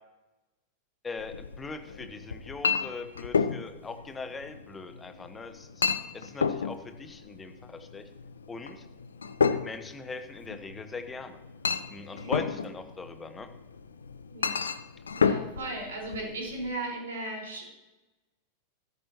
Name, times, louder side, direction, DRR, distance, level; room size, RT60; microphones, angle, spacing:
voice 1, 1.0-5.9 6.1-8.0 8.5-8.8 9.6-11.4 11.9-13.5, left 4 dB, 15° left, 7 dB, 1.2 m, -40 dB
Chink clink, 1.2-16.7, left 6 dB, 70° left, 0.6 m, -32 dB
voice 2, 12.1-12.4 14.3-14.6 15.2-17.6, right 2 dB, 65° right, -1 dB, 4.7 m, -36 dB
15.5 x 14.0 x 3.0 m, 1.0 s
figure-of-eight pair, 90°, 0 cm